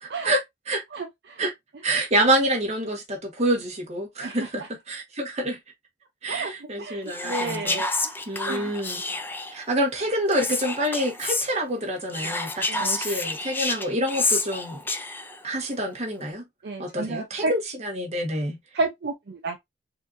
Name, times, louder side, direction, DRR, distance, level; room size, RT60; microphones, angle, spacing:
voice 1, 0.0-0.8 1.4-1.5 1.8-5.6 6.2-9.0 9.5-14.8 15.4-16.4 16.8-18.6, right 1 dB, 35° right, 1.2 m, -27 dB
voice 2, 6.8-7.9 8.5-8.7 12.7-12.9 16.6-17.5 18.7-19.6, right 3 dB, 60° right, 0.5 m, -30 dB
Whispering, 7.1-9.6 10.3-11.5 12.1-15.4, left 3 dB, 10° left, 0.3 m, -29 dB
4.2 x 2.7 x 2.5 m
head